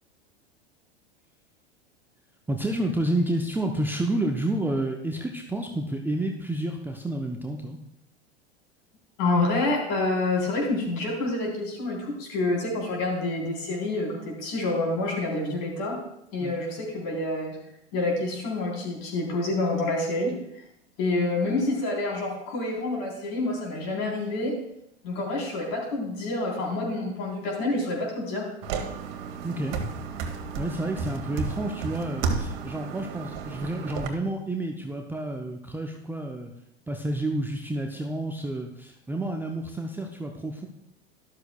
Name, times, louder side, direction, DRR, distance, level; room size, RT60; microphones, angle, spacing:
voice 1, 2.5-7.8 16.4-16.6 29.4-29.8 30.6-36.5 36.9-40.7, right 1 dB, 5° right, 2 dB, 0.6 m, -30 dB
voice 2, 9.2-16.0 16.3-17.6 17.9-20.3 21.0-24.6 25.0-28.5, left 2 dB, 50° left, 0 dB, 3.8 m, -27 dB
sound 1, 28.6-34.1, right 5 dB, 50° right, 1.4 m, -32 dB
12.5 x 12.0 x 2.3 m, 0.78 s
figure-of-eight pair, 85°, 32 cm